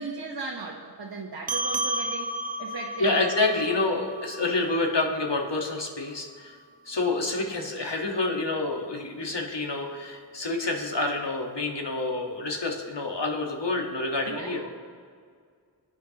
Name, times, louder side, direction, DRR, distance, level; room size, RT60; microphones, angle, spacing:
voice 1, 0.0-3.1 14.3-14.7, right 3 dB, 55° right, -2 dB, 1.2 m, -37 dB
sound 1, 1.5-6.3, right 1 dB, 20° right, 0.8 m, -34 dB
voice 2, 3.0-6.6 6.8-14.6, left 2 dB, 70° left, 1 dB, 1.6 m, -28 dB
22.0 x 9.3 x 3.0 m, 2.1 s
wide cardioid pair, 50°, 44 cm